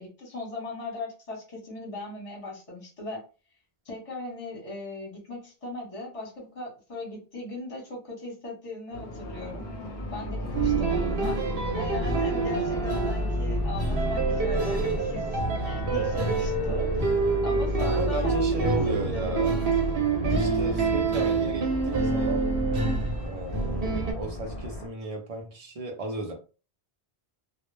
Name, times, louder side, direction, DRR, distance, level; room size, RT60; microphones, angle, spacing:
voice 1, 0.0-3.2 3.8-9.7 10.1-11.4 11.7-16.9 17.4-19.4, left 2 dB, 35° left, 0.9 m, -38 dB
sound 1, 8.9-24.9, left 1 dB, 60° left, 0.7 m, -35 dB
voice 2, 10.4-11.0 17.8-19.6 20.3-22.5 23.2-26.3, right 2 dB, 45° right, 0.5 m, -34 dB
sound 2, 10.5-24.1, right 3 dB, 65° right, 0.8 m, -26 dB
2.1 x 2.0 x 3.1 m
omnidirectional pair, 1.1 m